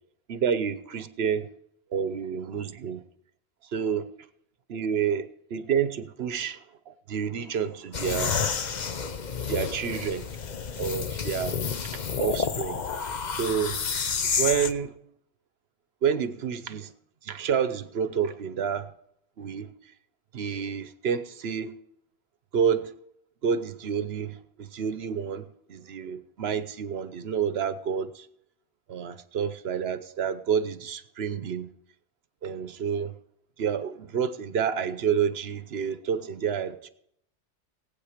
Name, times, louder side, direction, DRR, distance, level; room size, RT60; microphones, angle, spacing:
voice 1, 0.3-1.5 1.9-3.0 3.7-4.1 4.7-5.9 6.2-6.6 6.9-8.4 9.5-10.3 10.8-11.6 12.2-12.9 13.4-13.8 14.4-14.9 16.0-16.9 17.2-18.9 19.4-19.7 20.3-21.7 22.5-22.9 23.4-28.3 28.9-31.7 32.4-33.1 33.6-36.9, right 7 dB, 60° right, 1.1 m, -29 dB
sound 1, 7.9-14.7, left 6 dB, 45° left, 0.7 m, -30 dB
18.5 x 8.4 x 5.1 m
omnidirectional pair, 1.2 m